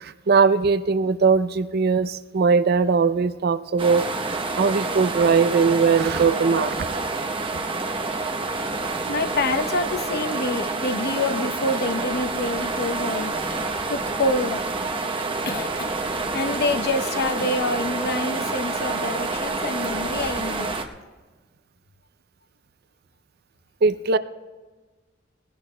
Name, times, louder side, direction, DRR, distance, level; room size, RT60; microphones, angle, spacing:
voice 1, 0.0-4.1 4.6-6.9 23.8-24.2, right 5 dB, 55° right, 12 dB, 0.5 m, -20 dB
sound 1, 3.8-20.9, right 3 dB, 25° right, 0.8 m, -28 dB
voice 2, 9.0-13.4 13.9-14.6 15.5-15.9 16.3-20.8, left 2 dB, 55° left, 9 dB, 0.8 m, -27 dB
20.5 x 17.0 x 2.2 m, 1.3 s
head